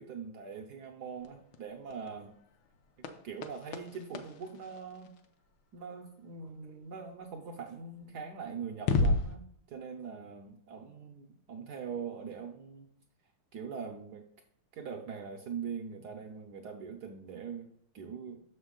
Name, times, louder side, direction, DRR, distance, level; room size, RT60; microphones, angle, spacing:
voice 1, 0.0-2.4 3.2-5.2 5.7-12.9 13.5-14.2 14.7-17.7 17.9-18.4, right 6 dB, 70° right, 4 dB, 1.0 m, -42 dB
sound 1, 1.0-5.7 8.0-8.1 8.7-9.4, left 3 dB, 65° left, 1.3 m, -34 dB
6.6 x 6.1 x 3.7 m, 0.68 s
omnidirectional pair, 2.4 m